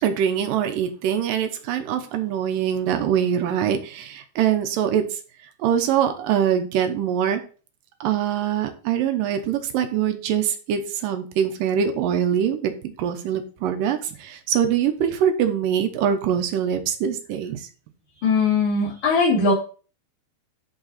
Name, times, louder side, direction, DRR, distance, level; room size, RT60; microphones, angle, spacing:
voice 1, 0.0-5.2 5.6-7.4 8.0-17.7, right 9 dB, 75° right, 6 dB, 2.3 m, -23 dB
voice 2, 18.2-19.5, left 4 dB, 55° left, -9 dB, 4.0 m, -20 dB
10.5 x 4.1 x 4.1 m, 0.37 s
omnidirectional pair, 4.6 m